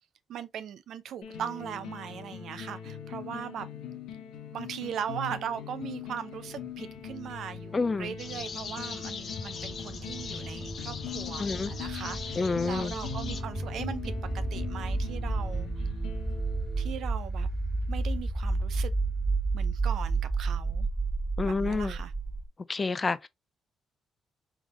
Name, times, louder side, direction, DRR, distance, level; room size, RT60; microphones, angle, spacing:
voice 1, 0.3-3.7 4.5-15.8 16.8-17.5 17.9-18.9 19.5-20.9 21.4-22.1, right 8 dB, 70° right, 0.5 m, -39 dB
sound 1, 1.2-17.1, left 7 dB, 90° left, 1.2 m, -41 dB
sound 2, 6.6-22.5, right 3 dB, 15° right, 1.7 m, -32 dB
voice 2, 7.7-8.1 11.4-11.7 12.4-12.9 21.4-21.9 22.7-23.3, left 4 dB, 30° left, 0.4 m, -28 dB
sound 3, 8.2-13.4, left 5 dB, 55° left, 0.8 m, -41 dB
3.5 x 3.5 x 3.1 m
cardioid pair, 90°, 0 cm